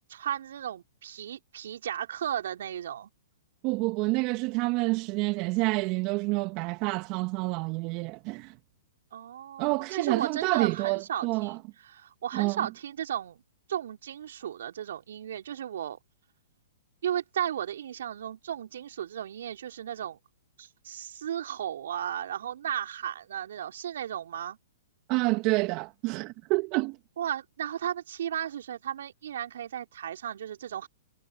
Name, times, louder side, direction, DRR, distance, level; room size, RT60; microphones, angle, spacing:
voice 1, 0.1-3.1 9.1-13.4 13.7-16.0 17.0-20.2 20.6-24.6 27.2-30.9, right 10 dB, 65° right, 3.7 m, -35 dB
voice 2, 3.6-8.5 9.6-11.6 12.3-12.7 25.1-27.0, right 25 dB, 40° right, 1.8 m, -28 dB
hypercardioid pair, 120°, 0 cm